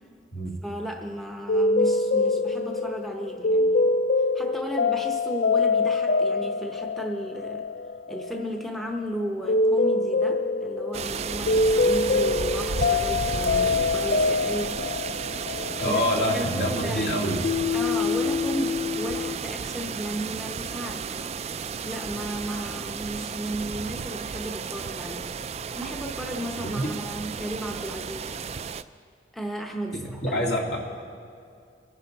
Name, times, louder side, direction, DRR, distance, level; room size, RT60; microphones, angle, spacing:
voice 1, 0.6-4.0 4.3-7.7 8.1-14.8 15.8-17.1 17.7-21.2 21.8-25.3 25.7-28.3 29.3-30.5, right 1 dB, ahead, 2 dB, 0.8 m, -34 dB
sound 1, 1.5-17.1 17.4-19.4, left 3 dB, 55° left, 0.4 m, -25 dB
sound 2, 10.9-28.8, right 6 dB, 35° right, 0.3 m, -33 dB
voice 2, 15.8-17.4 26.6-26.9 30.2-30.8, equal, 70° left, -2 dB, 2.5 m, -26 dB
24.5 x 10.5 x 4.0 m, 2.4 s
head